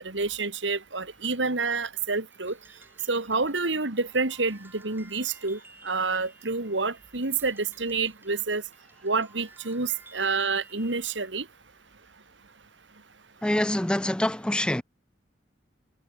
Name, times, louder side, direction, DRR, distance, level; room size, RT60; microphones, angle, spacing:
voice 1, 0.0-2.5 3.1-5.6 5.8-8.6 9.0-11.4, right 4 dB, 85° right, 2.4 m, -28 dB
sound 1, 2.3-11.3, right 2 dB, 10° right, 7.0 m, -55 dB
voice 2, 13.4-14.8, left 1 dB, 5° left, 0.4 m, -25 dB
head